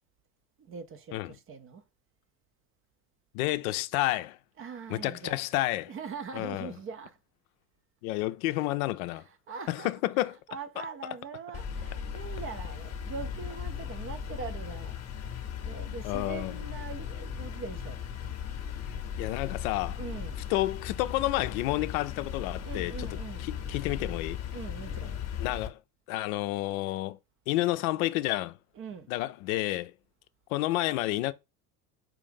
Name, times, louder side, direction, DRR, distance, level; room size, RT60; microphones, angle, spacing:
voice 1, 0.7-1.8 4.6-5.4 5.9-7.2 9.5-9.9 10.5-18.0 20.0-20.4 22.6-23.5 24.5-25.1 28.8-29.1, right 5 dB, 30° right, 0.5 m, -42 dB
voice 2, 3.3-4.4 4.9-5.9 6.3-6.8 8.0-9.2 9.7-10.4 10.8-10.9 16.0-16.6 18.9-20.0 20.5-24.4 25.4-25.8 26.1-27.2 27.5-28.6 29.1-29.9 30.5-31.3, left 17 dB, 65° left, 0.5 m, -30 dB
sound 1, 11.5-25.7, left 8 dB, 35° left, 0.8 m, -37 dB
4.7 x 2.5 x 3.7 m
hypercardioid pair, 80°, 46 cm